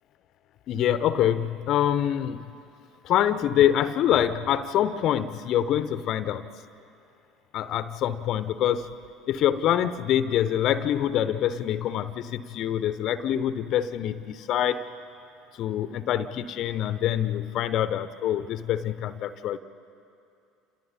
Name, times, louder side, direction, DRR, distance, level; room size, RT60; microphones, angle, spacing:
voice 1, 0.7-2.5 3.0-6.5 7.5-8.9 9.3-14.8 15.6-19.6, left 10 dB, 50° left, 13 dB, 0.8 m, -25 dB
28.5 x 28.5 x 4.3 m, 2.6 s
figure-of-eight pair, 65°, 0 cm